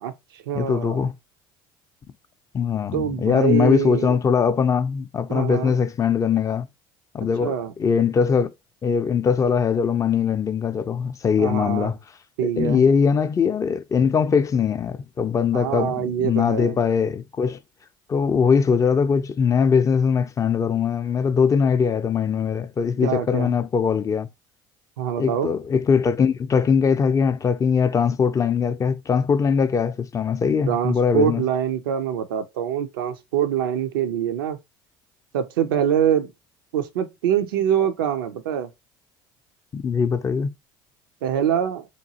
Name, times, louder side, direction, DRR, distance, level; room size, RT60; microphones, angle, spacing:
voice 1, 0.0-1.0 2.9-4.2 5.3-5.8 7.4-7.7 11.4-11.9 12.4-12.8 15.5-16.8 23.0-23.5 25.0-25.5 30.7-34.6 35.3-36.3 36.7-38.7 41.2-41.9, right 9 dB, 85° right, 0.4 m, -24 dB
voice 2, 0.5-1.1 2.5-6.7 7.1-7.5 7.8-8.5 8.8-12.0 12.4-17.6 18.1-24.3 25.2-31.4 39.7-40.5, left 6 dB, 30° left, 0.3 m, -21 dB
2.9 x 2.3 x 2.7 m
hypercardioid pair, 70°, 11 cm